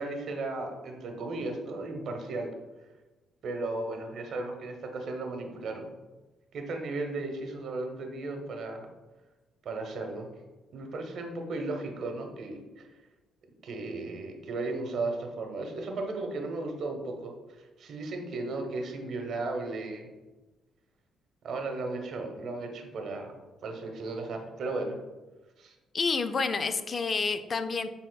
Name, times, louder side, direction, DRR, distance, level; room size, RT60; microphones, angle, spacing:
voice 1, 0.0-2.5 3.4-5.9 6.5-8.9 9.6-10.3 10.7-12.9 13.6-20.1 21.4-23.3 23.6-25.0 25.6-25.7, right 2 dB, 65° right, 4 dB, 0.8 m, -35 dB
voice 2, 25.9-27.9, left 4 dB, 40° left, 10 dB, 0.4 m, -29 dB
6.6 x 3.5 x 2.2 m, 1.2 s
cardioid pair, 90°, 0 cm